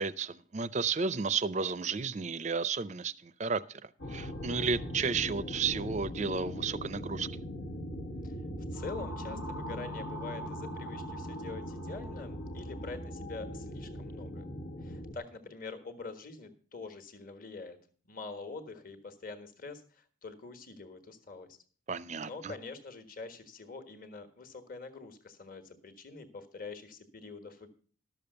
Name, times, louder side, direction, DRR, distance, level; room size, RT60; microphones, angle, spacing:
voice 1, 0.0-7.3 21.9-22.5, right 5 dB, 35° right, 0.5 m, -33 dB
sound 1, 4.0-15.1, equal, 85° left, 1.4 m, -40 dB
voice 2, 8.7-14.5 14.8-17.8 18.1-21.6 22.2-27.7, left 4 dB, 45° left, 1.4 m, -45 dB
12.0 x 7.0 x 6.7 m
head